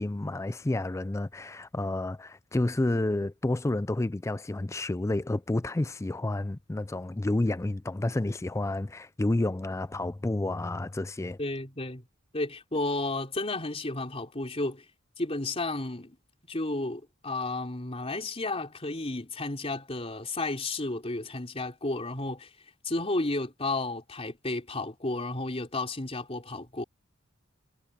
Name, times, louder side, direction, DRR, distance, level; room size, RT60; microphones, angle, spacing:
voice 1, 0.0-11.4, left 2 dB, 15° left, 0.4 m, -30 dB
voice 2, 11.4-12.0 12.3-14.8 15.2-16.2 16.5-22.5 22.8-26.8, left 2 dB, 30° left, 3.7 m, -32 dB
head